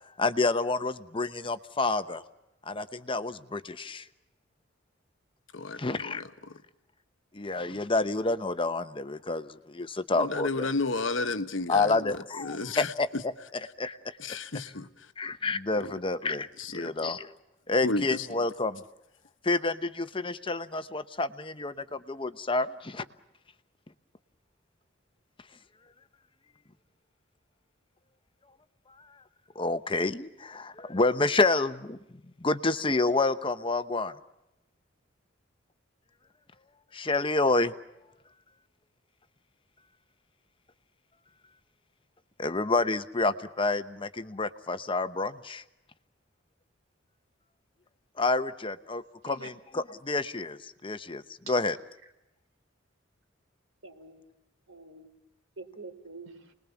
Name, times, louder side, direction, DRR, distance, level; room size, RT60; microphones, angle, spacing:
voice 1, 0.2-2.2 2.7-4.0 5.8-6.2 7.3-10.7 11.7-14.1 15.2-17.3 17.7-18.8 19.4-23.0 29.5-32.0 32.4-34.1 36.9-37.7 42.4-45.6 48.2-51.8, left 3 dB, 25° left, 0.9 m, -29 dB
voice 2, 5.5-6.2 10.2-13.2 14.2-14.9 15.8-15.9 16.6-17.1 17.8-18.3, left 3 dB, 75° left, 1.3 m, -32 dB
voice 3, 53.8-54.2 54.7-55.1 55.6-56.5, right 3 dB, 85° right, 4.3 m, -46 dB
29.5 x 21.0 x 7.1 m
head